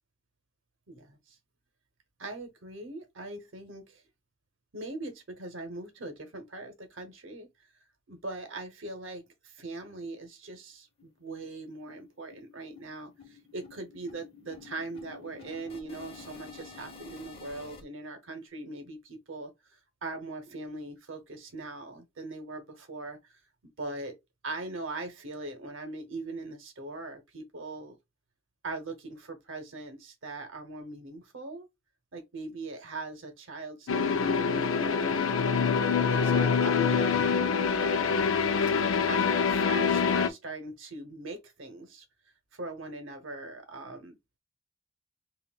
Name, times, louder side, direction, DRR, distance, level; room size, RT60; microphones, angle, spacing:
voice 1, 0.9-1.4 2.2-4.0 4.7-7.5 8.1-19.5 20.0-23.3 23.8-24.2 24.4-28.0 28.6-31.7 32.1-35.6 36.1-38.4 39.1-42.0 42.5-44.4, right 2 dB, 70° right, 0.9 m, -41 dB
sound 1, 10.6-10.7 11.0-11.1 11.4-11.6 11.9-17.8, left 5 dB, 30° left, 1.1 m, -50 dB
sound 2, 33.9-40.3, left 5 dB, 80° left, 0.5 m, -25 dB
5.7 x 2.4 x 2.3 m
head